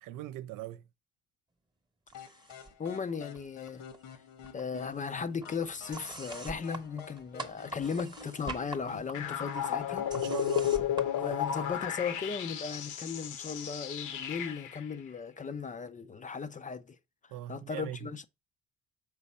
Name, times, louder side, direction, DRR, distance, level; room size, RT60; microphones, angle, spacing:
voice 1, 0.0-0.8 10.1-10.7 17.3-18.0, right 14 dB, 70° right, 0.5 m, -40 dB
sound 1, 2.1-9.7, left 7 dB, 75° left, 1.4 m, -50 dB
sound 2, 2.1-2.9 3.1-4.2 4.4-12.0, right 3 dB, 15° right, 0.9 m, -46 dB
voice 2, 2.8-3.8 4.5-10.1 11.2-17.0 17.5-18.2, left 5 dB, 25° left, 0.4 m, -37 dB
sound 3, 9.1-14.8, left 10 dB, 60° left, 0.9 m, -33 dB
6.1 x 4.1 x 4.2 m
cardioid pair, 120°, 34 cm